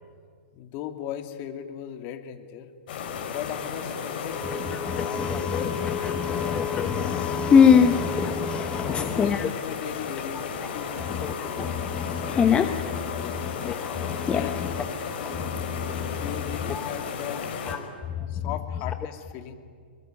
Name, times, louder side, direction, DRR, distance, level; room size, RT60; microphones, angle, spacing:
voice 1, 0.5-2.7 3.3-6.5 9.0-11.6 13.1-13.4 14.3-14.8 16.1-17.4 18.3-19.5, left 10 dB, 35° left, 7 dB, 2.5 m, -38 dB
sound 1, 2.9-17.8, left 6 dB, 55° left, 5.4 m, -34 dB
voice 2, 4.3-9.5 10.6-14.8 15.1-16.2 16.7-16.9 17.7-17.8 18.2-18.3, left 7 dB, 15° left, 7 dB, 1.1 m, -25 dB
25.0 x 22.5 x 9.3 m, 2.1 s
hypercardioid pair, 130°, 6 cm